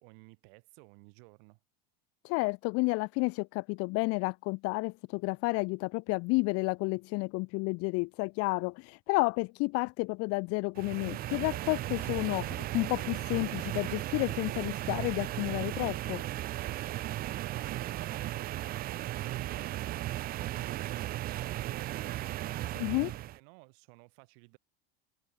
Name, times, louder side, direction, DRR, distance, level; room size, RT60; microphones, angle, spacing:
voice 1, 0.0-1.6 17.5-24.6, right 38 dB, 70° right, 6.9 m, -55 dB
voice 2, 2.2-16.2 22.8-23.1, left 28 dB, 50° left, 0.5 m, -31 dB
sound 1, 10.8-23.4, right 15 dB, 30° right, 0.4 m, -36 dB
supercardioid pair, 120°, 31 cm